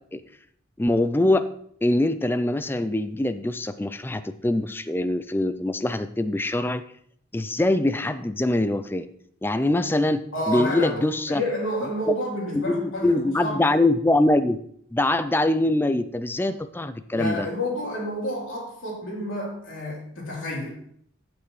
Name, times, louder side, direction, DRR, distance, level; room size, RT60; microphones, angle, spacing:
voice 1, 0.8-1.4 1.8-6.8 7.3-9.1 9.4-11.4 12.5-14.6 14.9-17.5, left 1 dB, 10° left, 12 dB, 0.4 m, -23 dB
voice 2, 10.3-13.7 17.1-20.8, equal, 80° left, -3 dB, 3.5 m, -29 dB
14.0 x 6.1 x 3.2 m, 0.65 s
head